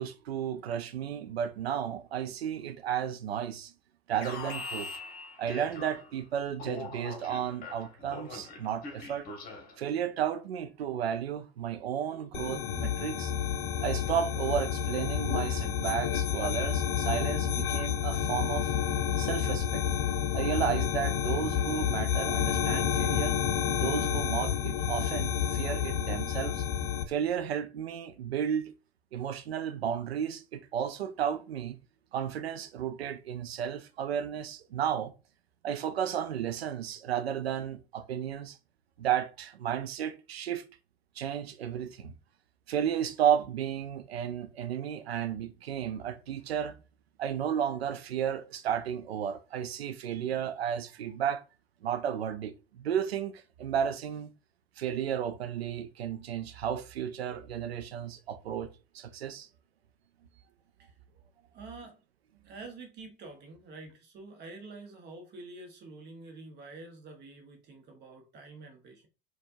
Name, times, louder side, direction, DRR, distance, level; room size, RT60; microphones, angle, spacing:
voice 1, 0.0-3.7 4.1-4.9 5.4-9.3 9.8-13.3 13.8-18.7 19.2-19.8 20.3-23.4 23.7-26.6 27.1-28.7 29.1-31.8 32.1-35.1 35.6-38.6 39.0-40.6 41.2-42.1 42.7-46.8 47.2-51.4 51.8-54.3 54.8-58.7 58.9-59.5, right 9 dB, 75° right, 0.5 m, -33 dB
Alarm, 4.2-6.2 6.6-9.8, left 3 dB, 30° left, 1.3 m, -42 dB
sound 1, 12.3-27.0, left 8 dB, 50° left, 0.6 m, -30 dB
voice 2, 61.5-62.0 62.4-69.1, right 3 dB, 35° right, 1.0 m, -47 dB
4.3 x 2.4 x 2.6 m
figure-of-eight pair, 80°, 31 cm